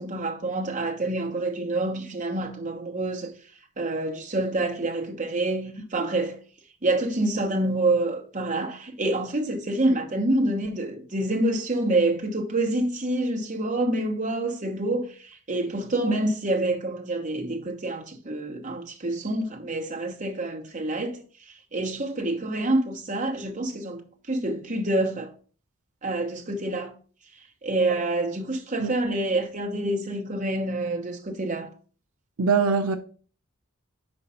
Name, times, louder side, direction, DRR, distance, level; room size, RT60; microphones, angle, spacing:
voice 1, 0.0-3.3 3.8-6.4 6.8-25.3 26.0-26.9 27.6-31.7, right 2 dB, 35° right, 1.1 m, -27 dB
voice 2, 32.4-33.0, right 5 dB, 75° right, 0.6 m, -22 dB
5.3 x 4.9 x 5.5 m
head